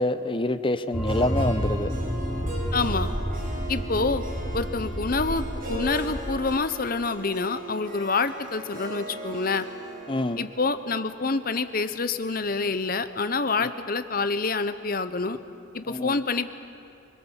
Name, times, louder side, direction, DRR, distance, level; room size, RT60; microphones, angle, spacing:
voice 1, 0.0-1.9 10.1-10.4 15.9-16.2, left 1 dB, 25° left, 11 dB, 0.8 m, -26 dB
sound 1, 0.9-6.4, equal, ahead, 3.2 m, -30 dB
Harp, 1.1-13.2, right 1 dB, 40° right, 6.4 m, -40 dB
voice 2, 2.7-3.1 3.7-4.2 4.5-9.7 10.4-15.4 15.7-16.5, left 3 dB, 45° left, 11 dB, 0.9 m, -27 dB
25.5 x 21.5 x 7.3 m, 2.9 s
head